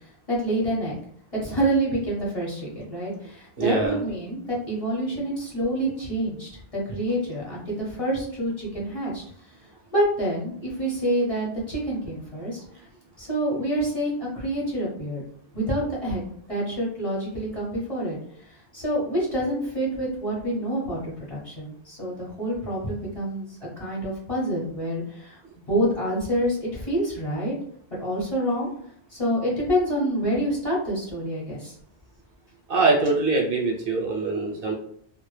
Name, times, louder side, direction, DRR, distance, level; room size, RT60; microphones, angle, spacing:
voice 1, 0.3-1.0 1.4-9.2 9.9-12.6 13.2-15.2 15.5-16.2 16.5-18.2 18.7-27.6 28.0-28.7 29.1-31.7, right 1 dB, 35° left, -6 dB, 0.8 m, -27 dB
voice 2, 3.6-4.0 32.7-34.7, right 3 dB, 65° right, -1 dB, 0.7 m, -23 dB
2.1 x 2.0 x 3.0 m, 0.65 s
omnidirectional pair, 1.1 m